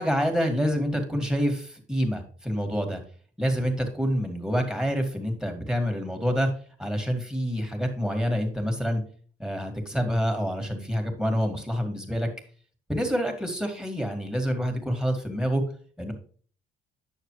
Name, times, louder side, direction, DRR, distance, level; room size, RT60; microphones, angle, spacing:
voice 1, 0.0-3.0 3.4-6.5 6.8-9.0 9.4-12.3 12.9-15.6 16.0-16.1, equal, 5° right, 3 dB, 2.2 m, -27 dB
9.2 x 6.8 x 3.2 m, 0.44 s
cardioid pair, 90°, 20 cm